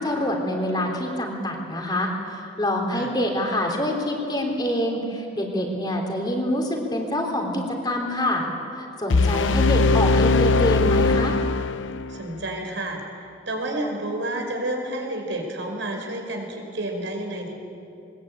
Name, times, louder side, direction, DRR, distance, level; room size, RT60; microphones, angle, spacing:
voice 1, 0.0-8.5 9.0-11.4, left 1 dB, 20° left, 1 dB, 3.5 m, -26 dB
sound 1, 9.1-12.2, left 3 dB, 80° left, 0.6 m, -20 dB
voice 2, 9.3-9.7 12.1-17.5, right 1 dB, 75° right, 2 dB, 4.9 m, -30 dB
22.5 x 21.0 x 8.9 m, 2.7 s
head